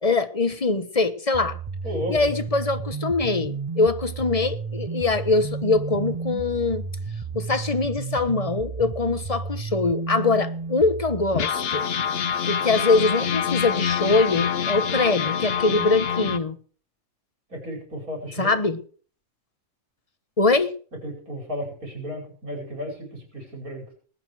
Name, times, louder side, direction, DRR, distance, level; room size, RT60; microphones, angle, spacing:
voice 1, 0.0-1.6 2.1-6.8 7.3-11.9 12.5-16.6 18.4-18.8 20.4-20.7, left 3 dB, 25° left, 1.1 m, -23 dB
sound 1, 1.3-11.5, right 5 dB, 30° right, 0.9 m, -32 dB
voice 2, 1.8-2.2 17.5-18.6 21.0-23.9, equal, 80° right, 5.8 m, -33 dB
sound 2, 5.3-8.5 9.0-9.1 9.3-9.5 10.1-10.2 11.3-16.4, left 7 dB, 50° left, 1.1 m, -26 dB
19.5 x 9.8 x 4.8 m
omnidirectional pair, 1.5 m